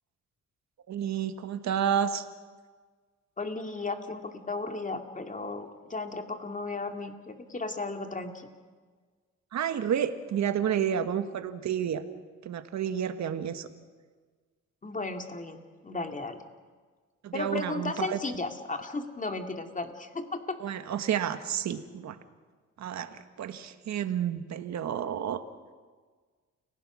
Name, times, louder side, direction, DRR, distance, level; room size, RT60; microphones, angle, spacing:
voice 1, 0.9-2.2 9.5-12.0 12.4-13.7 17.2-18.2 20.6-22.2 22.8-25.4, right 9 dB, 65° right, 10 dB, 1.6 m, -30 dB
voice 2, 3.4-8.5 14.8-16.4 17.3-20.6, left 3 dB, 25° left, 5 dB, 2.4 m, -35 dB
29.5 x 17.0 x 6.3 m, 1.5 s
cardioid pair, 90°, 30 cm